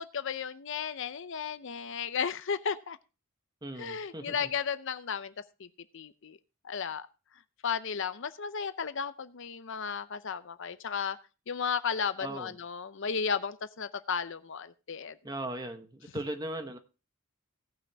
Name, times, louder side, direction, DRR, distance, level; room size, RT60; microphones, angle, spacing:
voice 1, 0.0-3.0 3.8-5.3 5.6-5.7 5.9-6.4 6.6-7.1 7.6-11.2 11.5-15.2, left 6 dB, 60° left, 0.6 m, -34 dB
voice 2, 3.6-4.5 12.2-12.5 15.2-16.8, right 1 dB, 20° right, 1.0 m, -38 dB
17.5 x 6.1 x 3.4 m
head